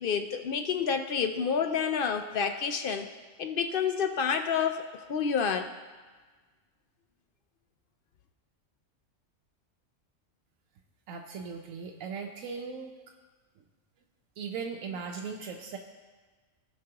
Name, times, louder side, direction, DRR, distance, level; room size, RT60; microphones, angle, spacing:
voice 1, 0.0-3.1 3.4-5.7, left 6 dB, 65° left, 7 dB, 0.6 m, -29 dB
voice 2, 11.1-12.9 14.4-15.8, right 5 dB, 85° right, 2 dB, 1.1 m, -38 dB
17.0 x 6.0 x 2.9 m, 1.4 s
omnidirectional pair, 1.3 m